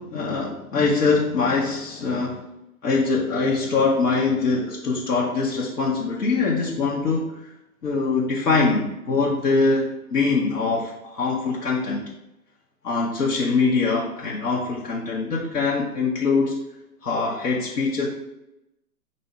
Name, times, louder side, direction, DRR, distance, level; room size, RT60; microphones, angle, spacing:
voice 1, 0.0-2.4 2.8-7.5 7.8-12.0 12.8-16.6 17.0-18.1, left 4 dB, 80° left, -4 dB, 1.0 m, -23 dB
4.1 x 2.7 x 4.5 m, 0.90 s
hypercardioid pair, 125°, 46 cm